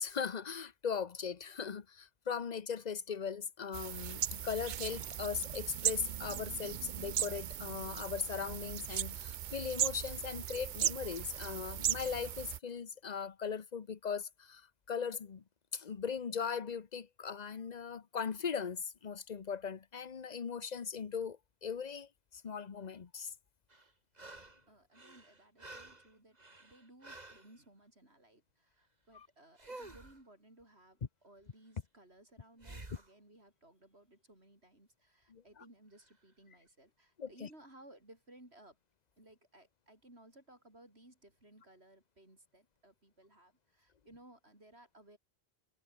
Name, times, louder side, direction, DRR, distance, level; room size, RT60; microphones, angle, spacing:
voice 1, 0.0-15.4 15.7-23.3 29.1-29.3 35.3-35.4 37.2-37.5, left 6 dB, 45° left, 1.0 m, -39 dB
sound 1, 3.7-12.6, right 10 dB, 55° right, 0.6 m, -37 dB
sound 2, 23.7-24.6 24.9-27.5 29.6-30.2 32.6-33.1 36.0-36.1, right 2 dB, 40° right, 2.9 m, -51 dB
voice 2, 24.7-38.8 39.2-45.2, right 1 dB, 75° right, 7.9 m, -60 dB
omnidirectional pair, 1.1 m